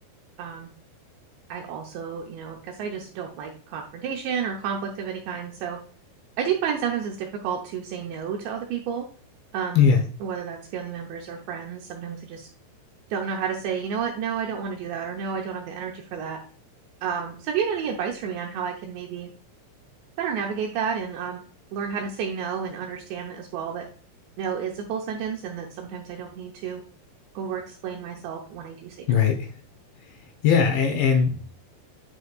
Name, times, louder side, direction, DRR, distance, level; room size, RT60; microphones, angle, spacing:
voice 1, 0.4-0.7 1.5-5.8 6.4-9.1 9.5-9.9 10.2-12.5 13.1-16.4 17.0-19.3 20.2-21.4 21.7-23.9 24.4-26.8 27.4-29.2, right 7 dB, 80° right, 1 dB, 2.7 m, -31 dB
voice 2, 9.7-10.0 29.1-29.5 30.4-31.5, left 6 dB, 75° left, 4 dB, 2.9 m, -20 dB
9.6 x 5.6 x 2.3 m, 0.43 s
omnidirectional pair, 5.8 m